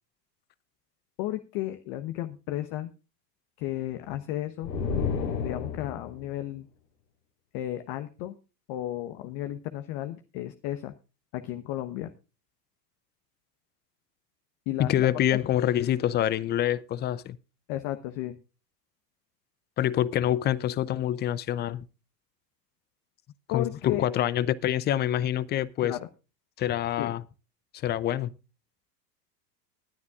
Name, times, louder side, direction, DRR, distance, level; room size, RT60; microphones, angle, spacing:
voice 1, 1.2-2.9 3.6-4.7 5.4-6.7 7.5-8.3 8.7-10.9 11.3-12.1 14.7-15.1 17.7-18.4 23.5-24.1 25.8-26.1 27.0-27.1, left 14 dB, 45° left, 1.2 m, -33 dB
sound 1, 4.6-6.2, left 5 dB, 80° left, 4.5 m, -30 dB
voice 2, 14.8-17.4 19.8-21.8 23.5-26.0 26.6-27.2 27.8-28.3, left 11 dB, 20° left, 0.5 m, -26 dB
20.0 x 9.5 x 2.4 m
hypercardioid pair, 105°, 49 cm